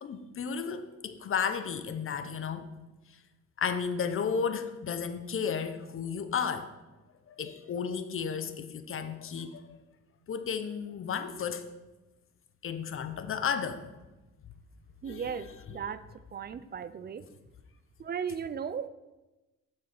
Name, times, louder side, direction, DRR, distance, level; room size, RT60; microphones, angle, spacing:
voice 1, 0.0-2.7 3.6-6.7 7.3-9.6 10.3-11.6 12.6-13.8 15.0-15.4, left 6 dB, 45° left, 10 dB, 0.8 m, -33 dB
voice 2, 15.0-16.0 16.3-17.2 18.0-18.9, right 7 dB, 35° right, 14 dB, 0.4 m, -36 dB
7.2 x 4.7 x 5.9 m, 1.1 s
cardioid pair, 90°, 30 cm